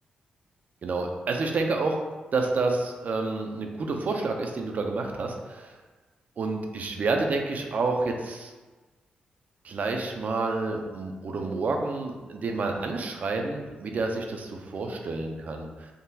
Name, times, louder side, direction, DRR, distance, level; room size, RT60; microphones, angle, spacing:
voice 1, 0.8-2.0 2.3-5.8 6.4-8.5 9.6-15.9, right 3 dB, 55° right, 3 dB, 0.4 m, -29 dB
3.7 x 2.2 x 2.7 m, 1.3 s
cardioid pair, 60°, 3 cm